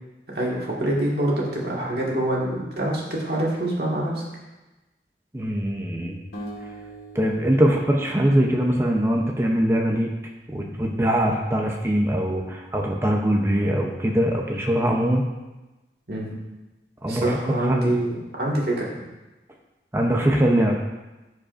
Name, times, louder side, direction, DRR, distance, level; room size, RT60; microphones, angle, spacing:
voice 1, 0.3-4.2 10.5-10.7 16.1-16.3 17.1-18.9, right 1 dB, 65° right, -4 dB, 2.0 m, -25 dB
voice 2, 5.3-6.2 7.1-10.1 10.5-15.2 17.0-18.0 19.9-20.8, equal, 15° right, 0 dB, 0.7 m, -22 dB
sound 1, 6.3-9.5, right 1 dB, 75° left, 1.8 m, -42 dB
14.5 x 5.0 x 2.6 m, 1.1 s
head